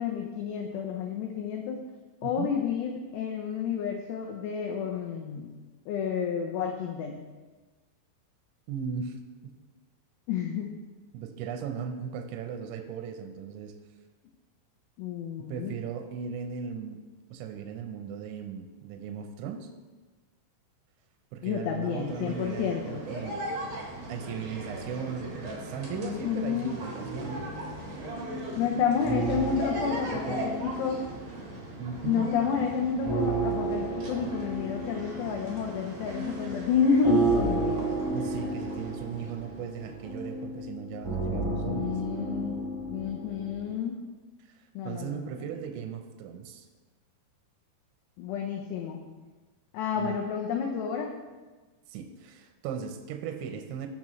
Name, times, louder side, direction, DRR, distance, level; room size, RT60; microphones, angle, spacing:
voice 1, 0.0-1.8 2.2-5.5 5.9-7.2 10.3-10.8 15.0-15.7 21.4-23.1 25.9-26.7 28.6-31.0 32.0-37.8 41.3-42.6 42.9-44.0 44.8-45.4 48.2-49.1 49.7-51.1, left 6 dB, 80° left, 2 dB, 2.5 m, -30 dB
voice 2, 2.2-2.5 8.7-9.2 11.1-13.8 15.5-17.0 17.3-19.7 21.3-23.4 24.1-27.5 29.7-30.4 31.8-32.3 38.1-42.0 44.4-44.6 44.9-46.7 50.0-50.2 51.9-53.9, right 7 dB, 80° right, 5 dB, 2.9 m, -37 dB
sound 1, 21.9-40.4, right 1 dB, 55° right, 2.0 m, -40 dB
sound 2, 27.1-31.8 32.2-43.7, right 3 dB, 10° right, 2.1 m, -33 dB
16.0 x 5.9 x 3.1 m, 1.3 s
omnidirectional pair, 5.6 m